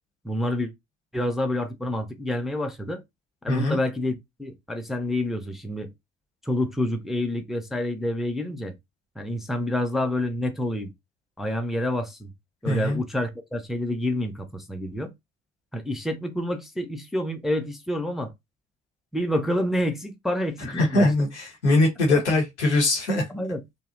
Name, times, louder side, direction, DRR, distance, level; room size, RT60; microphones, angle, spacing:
voice 1, 0.2-0.7 1.1-3.0 3.4-5.9 6.4-8.7 9.2-10.9 11.4-12.3 12.6-15.1 15.7-18.3 19.1-21.1 23.3-23.6, left 1 dB, ahead, 0.4 m, -28 dB
voice 2, 3.5-3.8 12.6-13.0 20.7-23.2, left 2 dB, 85° left, 0.7 m, -22 dB
2.6 x 2.0 x 2.4 m
figure-of-eight pair, 40°, 34 cm